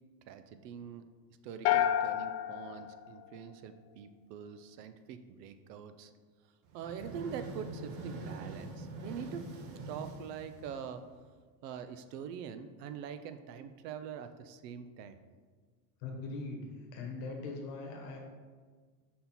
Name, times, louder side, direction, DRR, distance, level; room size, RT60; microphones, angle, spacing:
voice 1, 0.3-1.0 1.4-6.1 6.7-9.4 9.9-11.0 11.6-15.2, right 7 dB, 75° right, 10 dB, 0.6 m, -44 dB
sound 1, 1.7-3.9, left 11 dB, 80° left, 0.5 m, -31 dB
sound 2, 6.7-11.2, right 2 dB, 50° right, 0.9 m, -44 dB
voice 2, 16.0-18.2, left 3 dB, 40° left, 2 dB, 1.1 m, -41 dB
5.5 x 4.3 x 4.2 m, 1.5 s
supercardioid pair, 160°, 49 cm